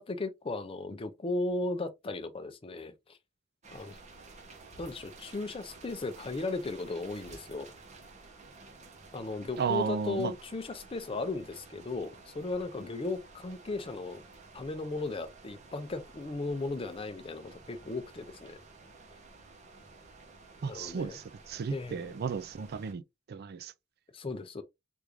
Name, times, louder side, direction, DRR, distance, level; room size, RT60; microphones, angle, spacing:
voice 1, 0.0-3.2 3.7-4.0 4.8-7.7 9.1-14.2 14.5-18.6 20.7-21.2 21.7-22.2 24.1-24.6, left 3 dB, 25° left, 0.5 m, -36 dB
sound 1, 3.6-22.9, right 3 dB, 35° right, 0.8 m, -53 dB
voice 2, 9.6-10.3 20.6-23.0 23.3-23.7, right 6 dB, 50° right, 0.4 m, -34 dB
3.5 x 2.5 x 3.0 m
head